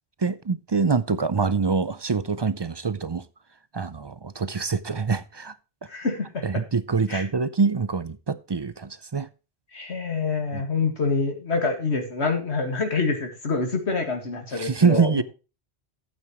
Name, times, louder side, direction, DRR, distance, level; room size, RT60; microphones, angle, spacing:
voice 1, 0.2-3.3 3.7-5.5 6.4-9.3 10.5-10.6 14.5-15.2, right 5 dB, 40° right, 0.4 m, -25 dB
voice 2, 5.9-6.6 7.1-7.3 9.7-15.2, left 4 dB, 90° left, 2.2 m, -26 dB
13.0 x 8.8 x 3.0 m
omnidirectional pair, 1.1 m